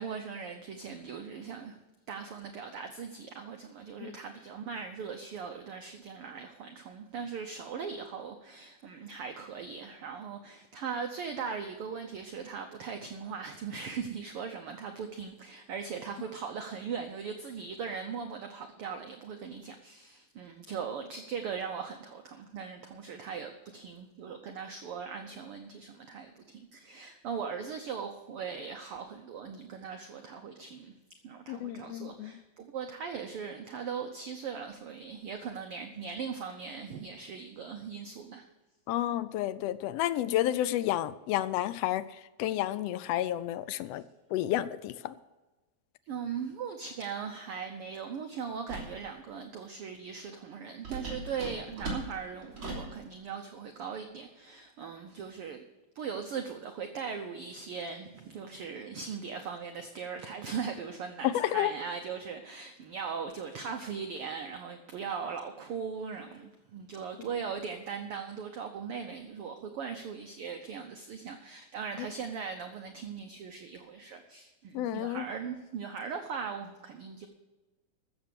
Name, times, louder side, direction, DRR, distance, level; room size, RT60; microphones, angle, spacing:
voice 1, 0.0-1.8 2.1-30.9 31.2-38.4 46.1-55.6 56.0-77.3, right 6 dB, 65° right, 5 dB, 1.5 m, -39 dB
voice 2, 31.5-32.3 38.9-42.1 42.4-44.0 44.3-45.1 61.2-61.7 74.7-75.2, left 13 dB, 85° left, 14 dB, 1.4 m, -30 dB
sound 1, 48.7-49.0 50.8-53.0, right 2 dB, 40° right, 4.1 m, -38 dB
14.0 x 7.4 x 6.8 m, 1.1 s
omnidirectional pair, 3.3 m